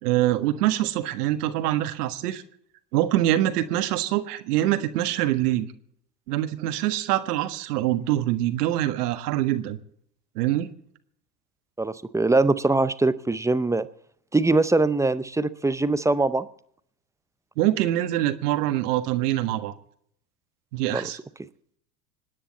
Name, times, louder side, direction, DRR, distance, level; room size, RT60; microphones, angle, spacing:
voice 1, 0.0-2.4 2.9-5.7 6.3-9.8 10.3-10.7 17.6-19.7 20.7-21.2, right 14 dB, 65° right, 10 dB, 1.7 m, -24 dB
voice 2, 11.8-13.9 14.3-16.5 20.9-21.1, right 2 dB, 5° right, 15 dB, 0.6 m, -22 dB
26.5 x 10.0 x 4.2 m, 0.67 s
hypercardioid pair, 85°, 49 cm